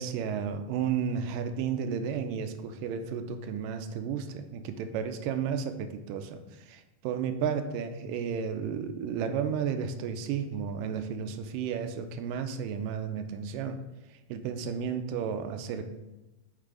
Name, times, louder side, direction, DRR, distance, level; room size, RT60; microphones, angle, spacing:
voice 1, 0.0-13.8 14.1-15.8, right 7 dB, 80° right, 8 dB, 2.1 m, -33 dB
8.2 x 5.6 x 3.8 m, 1.1 s
omnidirectional pair, 4.1 m